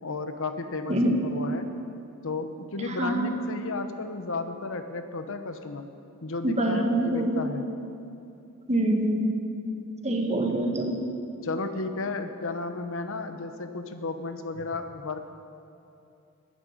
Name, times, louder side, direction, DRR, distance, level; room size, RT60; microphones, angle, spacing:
voice 1, 0.0-1.6 2.2-5.9 6.2-7.6 11.4-15.2, left 3 dB, 65° left, 8 dB, 1.1 m, -33 dB
voice 2, 0.9-1.2 2.8-3.3 6.4-7.4 8.7-9.4 10.0-11.1, right 1 dB, 30° right, 2 dB, 1.7 m, -25 dB
11.5 x 10.5 x 9.6 m, 2.7 s
head